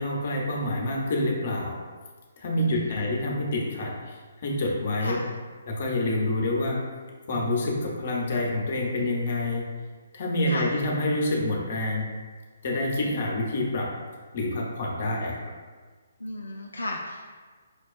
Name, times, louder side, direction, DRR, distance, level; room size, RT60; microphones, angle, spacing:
voice 1, 0.0-1.8 2.4-4.2 4.4-5.2 5.7-6.8 7.3-9.6 10.1-12.1 12.6-13.9 14.3-15.5, left 1 dB, 45° left, -2 dB, 0.8 m, -27 dB
voice 2, 2.6-3.0 5.0-5.3 9.0-9.1 10.5-10.8 16.2-17.3, left 1 dB, 80° left, 0 dB, 0.3 m, -35 dB
5.2 x 2.2 x 2.5 m, 1.4 s
figure-of-eight pair, 135°, 0 cm